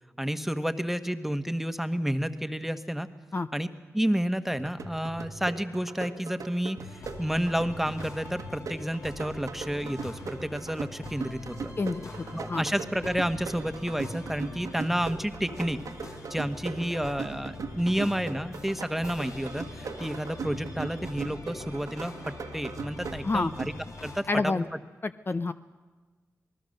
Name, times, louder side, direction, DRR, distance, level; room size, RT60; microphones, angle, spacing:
voice 1, 0.2-3.1 3.5-11.8 12.3-15.8 16.3-23.7 24.0-24.6, equal, 5° right, 9 dB, 1.3 m, -30 dB
sound 1, 4.5-24.2, right 4 dB, 75° right, 1.4 m, -40 dB
sound 2, 6.9-24.2, left 2 dB, 70° left, 3.4 m, -44 dB
voice 2, 11.8-12.1 12.5-12.6 23.2-23.5 24.3-24.6 25.0-25.5, left 3 dB, 40° left, 10 dB, 0.7 m, -27 dB
27.5 x 19.5 x 6.6 m, 1.3 s
cardioid pair, 55°, 6 cm